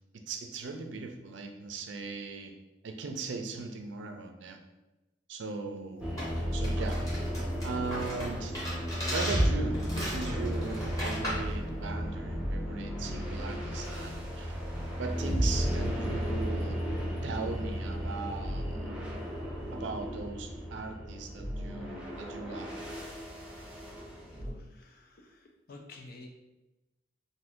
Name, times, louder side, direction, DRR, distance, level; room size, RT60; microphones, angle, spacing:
voice 1, 0.1-2.5 2.8-4.6 5.3-6.0 6.5-7.0 7.6-8.5 9.0-14.6 15.0-16.8 17.2-18.9 19.7-22.7, right 3 dB, 90° right, 5 dB, 0.4 m, -38 dB
sound 1, 6.0-24.5, equal, 5° right, 0.5 m, -34 dB
sound 2, 6.2-11.5, equal, 20° left, 0.9 m, -38 dB
voice 2, 24.3-26.3, left 2 dB, 55° left, 2 dB, 0.5 m, -51 dB
2.6 x 2.6 x 3.5 m, 1.0 s
head